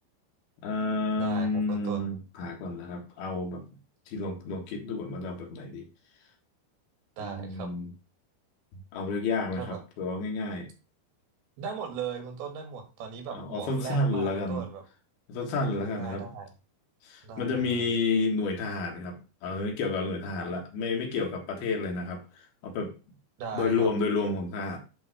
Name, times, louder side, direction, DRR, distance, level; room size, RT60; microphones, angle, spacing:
voice 1, 0.6-3.6 4.1-5.9 7.2-7.9 8.9-10.7 13.3-14.7 15.3-16.3 17.0-22.2 22.6-22.9 23.5-24.8, left 3 dB, 85° left, 3 dB, 3.6 m, -30 dB
voice 2, 1.2-2.1 7.2-7.7 9.6-9.8 11.6-14.8 15.7-16.5 17.2-17.9 23.4-23.9, right 6 dB, 90° right, 5 dB, 3.8 m, -38 dB
10.5 x 3.9 x 5.0 m, 0.30 s
omnidirectional pair, 4.3 m